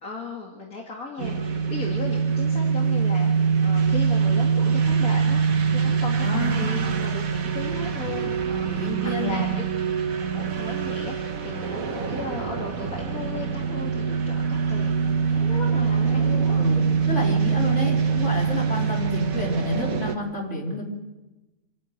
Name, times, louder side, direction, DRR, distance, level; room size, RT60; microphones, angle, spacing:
voice 1, 0.0-9.5 10.2-16.6 18.7-18.8, left 3 dB, 75° left, -1 dB, 2.6 m, -36 dB
sound 1, 1.2-20.1, right 6 dB, 70° right, 1.8 m, -24 dB
voice 2, 6.2-6.7 8.7-9.4 16.5-20.8, left 1 dB, 50° left, -2 dB, 4.4 m, -29 dB
27.0 x 10.5 x 9.4 m, 1.1 s
omnidirectional pair, 1.5 m